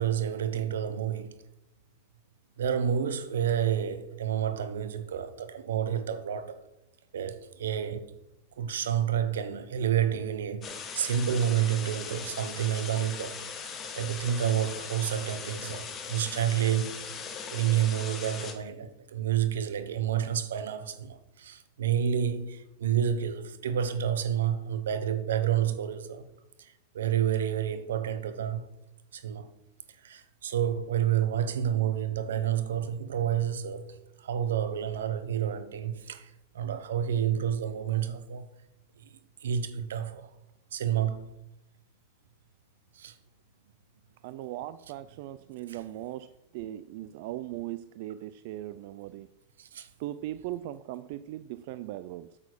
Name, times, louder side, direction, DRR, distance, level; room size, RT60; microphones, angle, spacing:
voice 1, 0.0-1.4 2.6-6.6 7.1-8.1 8.6-13.4 13.9-17.0 17.5-26.2 26.6-28.6 29.1-29.5 30.0-38.4 39.0-40.3 40.7-41.3 42.9-43.1 45.7-45.8 49.6-49.9, right 9 dB, 90° right, 1.1 m, -29 dB
sound 1, 10.6-18.5, left 6 dB, 30° left, 1.7 m, -40 dB
voice 2, 44.2-49.3 50.0-52.3, right 14 dB, 60° right, 0.4 m, -39 dB
8.4 x 7.4 x 6.3 m
supercardioid pair, 130°, 0 cm